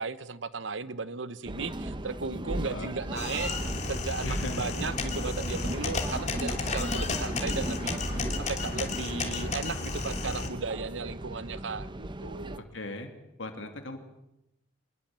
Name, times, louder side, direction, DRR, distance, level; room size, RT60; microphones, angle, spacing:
voice 1, 0.0-12.6, right 4 dB, 70° right, 15 dB, 1.1 m, -36 dB
sound 1, 1.4-12.6, right 1 dB, 25° right, 1.0 m, -36 dB
voice 2, 2.6-3.0 4.2-4.7 12.7-13.1 13.4-14.0, left 2 dB, 75° left, 5 dB, 2.8 m, -38 dB
sound 2, 3.1-10.5, left 3 dB, 35° left, 3.2 m, -33 dB
25.0 x 21.0 x 7.6 m, 0.87 s
head